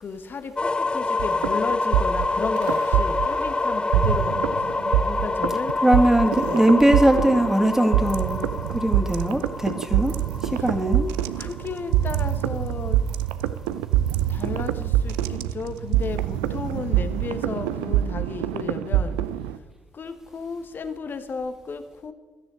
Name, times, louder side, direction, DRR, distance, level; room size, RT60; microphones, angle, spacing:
voice 1, 0.0-5.7 6.4-6.7 11.4-13.0 14.3-19.2 19.9-22.1, left 4 dB, 45° left, 10 dB, 1.3 m, -33 dB
sound 1, 0.6-12.4, left 3 dB, 20° left, 0.7 m, -27 dB
sound 2, 1.2-3.5 3.9-19.6, right 12 dB, 75° right, 0.5 m, -25 dB
voice 2, 5.8-8.4 8.7-10.1 10.4-11.1, right 1 dB, 10° right, 5 dB, 2.2 m, -20 dB
17.0 x 13.0 x 3.8 m, 1.3 s
figure-of-eight pair, 40°, 5 cm